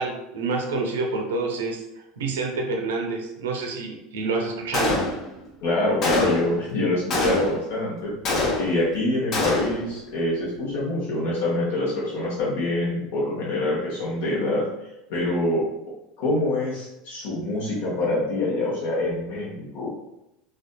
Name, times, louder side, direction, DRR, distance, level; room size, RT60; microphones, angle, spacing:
voice 1, 0.0-1.8 2.2-5.0, right 3 dB, 85° right, 2 dB, 0.5 m, -28 dB
Gunshot gunfire, 4.7-5.4 6.0-6.6 7.1-7.7 8.2-8.9 9.3-9.9, left 2 dB, 50° left, 0.6 m, -25 dB
voice 2, 5.6-8.1 8.6-14.7 15.1-15.7 16.2-20.1, left 2 dB, 75° left, -7 dB, 1.0 m, -25 dB
2.6 x 2.3 x 2.2 m, 0.88 s
hypercardioid pair, 95°, 0 cm